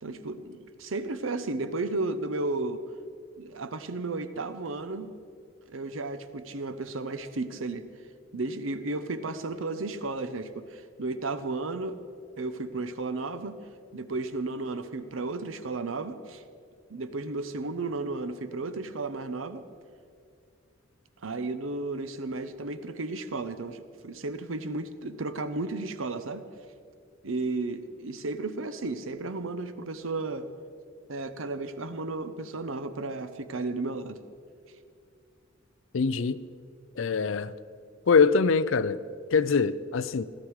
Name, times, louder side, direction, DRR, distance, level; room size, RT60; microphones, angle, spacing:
voice 1, 0.0-2.8 3.4-5.1 5.7-7.9 8.3-12.0 12.4-13.6 13.9-16.4 16.9-19.6 21.2-26.4 27.2-30.5 31.1-34.2, right 3 dB, 80° right, 0.8 m, -33 dB
voice 2, 35.9-36.4 37.0-37.5 38.1-39.0 39.3-40.2, left 5 dB, 70° left, 0.5 m, -23 dB
17.0 x 13.0 x 4.8 m
head